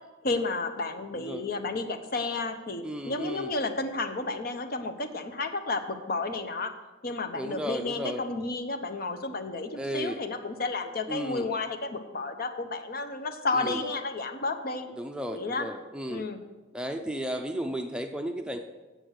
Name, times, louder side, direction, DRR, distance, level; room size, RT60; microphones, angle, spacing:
voice 1, 0.2-6.7 7.0-14.9 15.3-15.7 16.1-16.4, left 3 dB, 50° left, 7 dB, 0.8 m, -32 dB
voice 2, 1.1-1.4 2.8-3.5 7.3-8.2 9.8-10.2 11.1-11.5 13.5-13.9 15.0-16.2 16.7-18.6, equal, 5° right, 4 dB, 0.5 m, -34 dB
7.8 x 7.8 x 6.5 m, 1.2 s
head